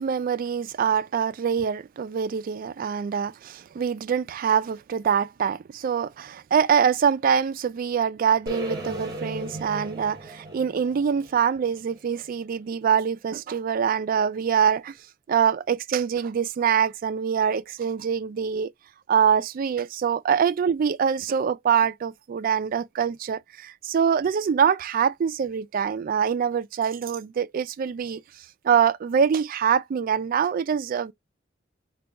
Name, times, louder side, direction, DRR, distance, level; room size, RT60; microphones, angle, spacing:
voice 1, 0.0-15.0 15.3-18.7 19.1-31.1, right 7 dB, 45° right, 0.3 m, -24 dB
sound 1, 8.5-12.5, equal, 20° right, 1.1 m, -37 dB
3.4 x 2.2 x 4.0 m
head